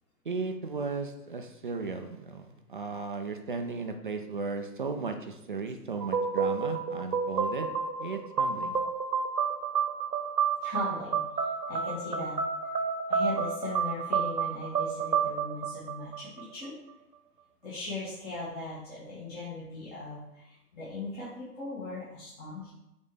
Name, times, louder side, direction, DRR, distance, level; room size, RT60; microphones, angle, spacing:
voice 1, 0.2-7.7 8.0-8.8, right 4 dB, 35° right, 5 dB, 0.4 m, -35 dB
sound 1, 6.0-16.7, right 6 dB, 80° right, 0.9 m, -30 dB
voice 2, 10.6-11.2 11.7-12.4 13.1-16.8 17.6-22.7, left 2 dB, 20° left, -9 dB, 1.7 m, -38 dB
7.3 x 4.1 x 3.6 m, 0.91 s
figure-of-eight pair, 125°, 49 cm